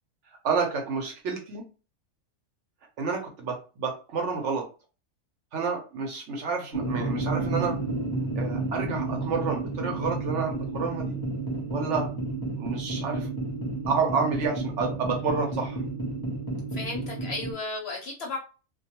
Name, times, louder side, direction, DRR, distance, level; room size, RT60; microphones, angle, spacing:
voice 1, 0.4-1.6 3.0-4.7 5.5-7.8 8.3-11.2 11.7-12.1 12.5-13.3 13.9-15.8, right 5 dB, 65° right, 1 dB, 0.9 m, -29 dB
sound 1, 6.7-17.5, right 2 dB, 25° left, 0.4 m, -31 dB
voice 2, 16.7-18.4, left 3 dB, 60° left, 1 dB, 0.7 m, -34 dB
2.3 x 2.2 x 2.8 m, 0.34 s
omnidirectional pair, 1.5 m